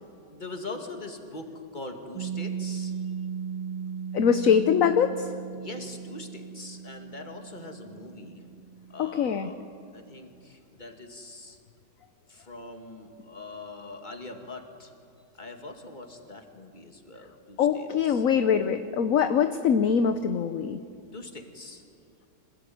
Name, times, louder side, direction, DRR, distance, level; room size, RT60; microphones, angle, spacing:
voice 1, 0.3-3.0 4.2-4.3 5.5-8.5 8.9-9.6 9.9-11.6 12.3-14.9 15.4-18.2 21.1-21.8, left 2 dB, 25° left, 4 dB, 2.4 m, -42 dB
Piano, 2.1-9.4, right 7 dB, 70° right, 2.5 m, -37 dB
voice 2, 4.1-5.3 9.0-9.5 17.6-20.8, left 7 dB, 55° left, 9 dB, 1.2 m, -23 dB
25.5 x 20.0 x 9.5 m, 2.5 s
omnidirectional pair, 1.9 m